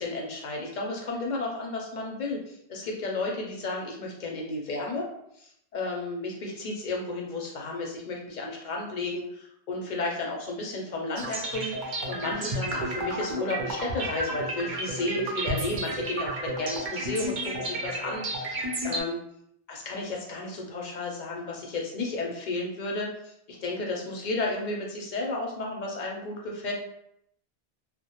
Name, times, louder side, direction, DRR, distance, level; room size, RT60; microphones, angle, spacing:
voice 1, 0.0-5.1 5.4-19.2 19.7-26.7, left 2 dB, 55° left, 0 dB, 0.6 m, -33 dB
sound 1, 11.2-19.0, right 1 dB, 60° right, 0.6 m, -32 dB
2.1 x 2.1 x 2.8 m, 0.73 s
omnidirectional pair, 1.0 m